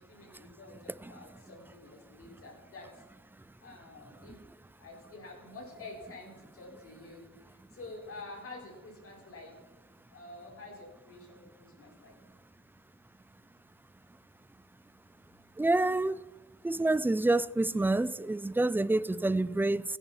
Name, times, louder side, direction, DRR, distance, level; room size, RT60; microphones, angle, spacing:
voice 1, 0.1-3.0 3.6-4.4 4.8-7.2 7.5-9.5 10.1-12.1, left 2 dB, 45° left, 5.1 m, -48 dB
voice 2, 15.6-16.2 16.6-19.8, right 2 dB, 5° right, 0.4 m, -27 dB
16.5 x 10.0 x 4.2 m
cardioid pair, 90°, 30 cm